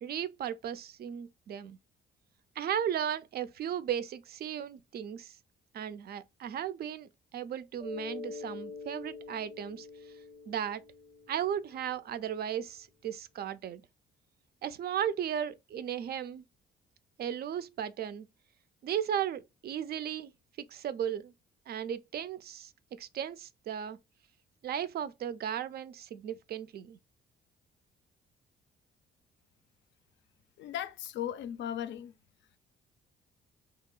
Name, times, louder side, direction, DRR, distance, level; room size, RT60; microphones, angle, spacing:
voice 1, 0.0-1.8 2.6-5.4 5.7-9.9 10.5-10.8 11.3-13.8 14.6-16.4 17.2-18.3 18.8-20.3 20.7-21.3 21.7-22.7 23.0-24.0 24.6-27.0, right 9 dB, 55° right, 0.4 m, -35 dB
Mallet percussion, 7.8-12.2, left 4 dB, ahead, 0.5 m, -45 dB
voice 2, 30.6-32.1, left 10 dB, 65° left, 0.4 m, -37 dB
2.8 x 2.1 x 2.2 m
cardioid pair, 90°, 20 cm